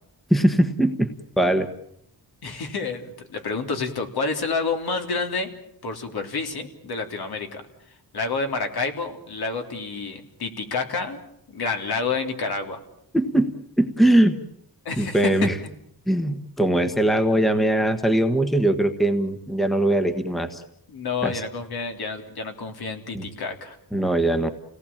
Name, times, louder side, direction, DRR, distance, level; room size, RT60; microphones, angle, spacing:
voice 1, 0.3-1.1 1.4-1.7 13.1-13.5 13.8-14.4 15.0-15.6 16.1-20.6 21.2-21.3 23.1-23.2 23.9-24.5, right 1 dB, ahead, 9 dB, 1.4 m, -21 dB
voice 2, 2.4-5.5 5.8-7.6 8.1-11.2 11.5-12.8 14.9-15.7 20.9-23.8, left 4 dB, 65° left, 5 dB, 3.5 m, -29 dB
29.5 x 18.5 x 8.7 m, 0.75 s
wide cardioid pair, 160°, 40 cm